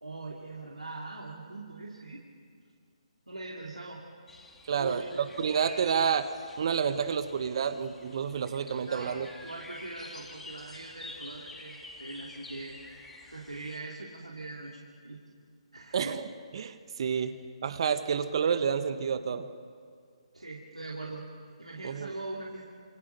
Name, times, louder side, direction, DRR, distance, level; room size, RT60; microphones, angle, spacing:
voice 1, 0.0-2.2 3.3-4.0 4.8-5.9 8.8-9.1 9.4-12.8 13.3-15.2 15.7-16.2 17.1-17.3 20.3-21.3 21.6-22.7, right 2 dB, 90° right, -2 dB, 2.8 m, -42 dB
sound 1, 4.3-13.8, left 2 dB, 5° left, 2.6 m, -49 dB
voice 2, 4.7-6.3 6.6-9.3 15.9-16.3 16.5-19.5 21.8-22.1, right 7 dB, 50° right, 10 dB, 1.1 m, -29 dB
27.0 x 25.0 x 6.7 m, 2.1 s
figure-of-eight pair, 140°, 3 cm